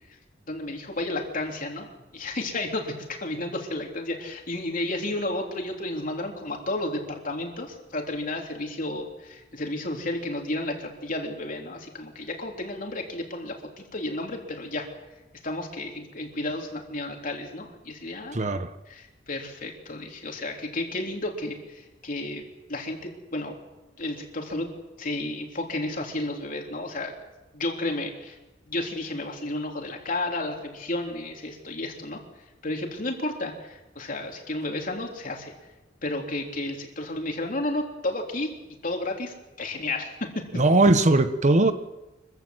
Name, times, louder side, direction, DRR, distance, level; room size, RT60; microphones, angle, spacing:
voice 1, 0.5-14.9 15.4-18.4 18.9-22.4 22.7-23.6 24.0-24.7 25.0-27.1 27.5-28.4 28.7-32.2 32.6-35.5 36.0-38.5 38.8-40.4, left 2 dB, 50° left, 2 dB, 3.6 m, -32 dB
voice 2, 18.3-18.7 40.5-41.7, right 2 dB, 40° right, 10 dB, 1.0 m, -19 dB
24.5 x 15.5 x 7.9 m, 1.0 s
head